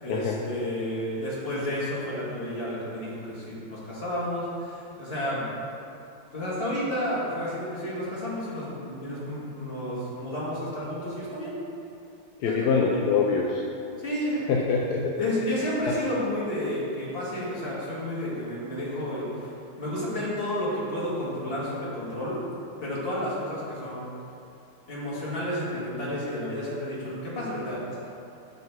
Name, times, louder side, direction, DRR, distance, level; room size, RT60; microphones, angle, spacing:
voice 1, 0.0-5.5 6.3-11.5 12.4-12.7 14.0-14.4 15.2-19.5 19.8-22.4 22.8-24.1 24.9-28.0, left 1 dB, 30° left, -7 dB, 1.7 m, -31 dB
voice 2, 12.4-13.6 14.5-15.1, left 5 dB, 75° left, -1 dB, 0.9 m, -24 dB
6.0 x 5.6 x 4.6 m, 2.7 s
omnidirectional pair, 2.2 m